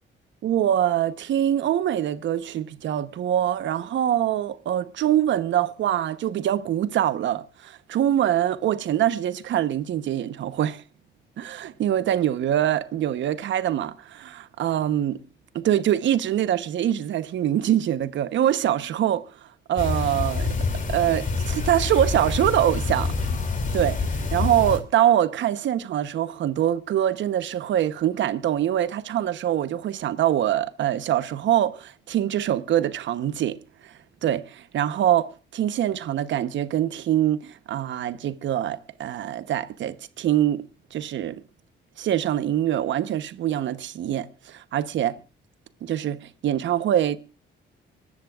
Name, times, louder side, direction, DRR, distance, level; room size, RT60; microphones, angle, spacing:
voice 1, 0.4-10.8 11.4-15.2 15.5-19.2 19.7-20.5 20.9-23.1 23.7-33.9 34.2-40.6 40.9-41.3 42.0-45.2 45.8-47.2, right 11 dB, 70° right, 0.9 m, -24 dB
sound 1, 19.8-24.8, left 4 dB, 40° left, 2.8 m, -27 dB
25.5 x 13.5 x 2.4 m
cardioid pair, 90°, 20 cm